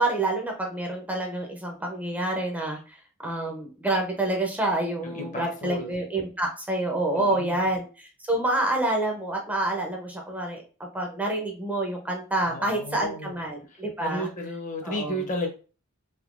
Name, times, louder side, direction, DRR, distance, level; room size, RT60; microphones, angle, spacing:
voice 1, 0.0-2.8 3.2-10.6 10.9-14.3 14.8-15.2, right 2 dB, 5° right, 1 dB, 0.5 m, -28 dB
voice 2, 5.0-5.9 7.1-7.7 12.5-13.4 13.7-15.5, left 1 dB, 35° left, 3 dB, 0.7 m, -33 dB
3.5 x 2.7 x 2.4 m, 0.35 s
head